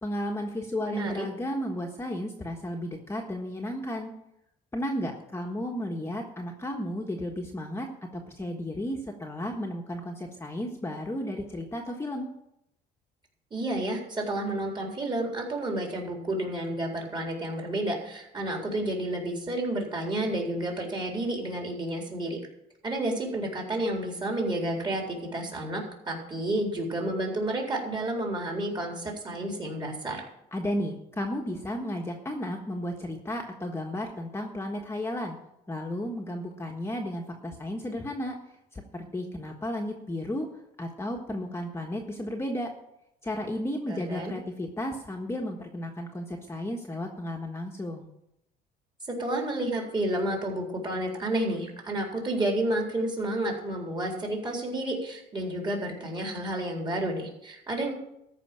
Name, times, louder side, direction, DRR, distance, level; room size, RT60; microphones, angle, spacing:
voice 1, 0.0-4.1 4.7-12.3 30.5-35.4 35.7-38.3 38.7-40.5 40.8-42.7 43.2-48.1, left 1 dB, 15° left, 1 dB, 1.5 m, -33 dB
voice 2, 0.8-1.3 13.5-22.4 22.8-30.2 43.9-44.3 49.2-57.9, right 1 dB, 25° right, 0 dB, 4.1 m, -30 dB
14.0 x 5.6 x 9.0 m, 0.80 s
cardioid pair, 110°, 17 cm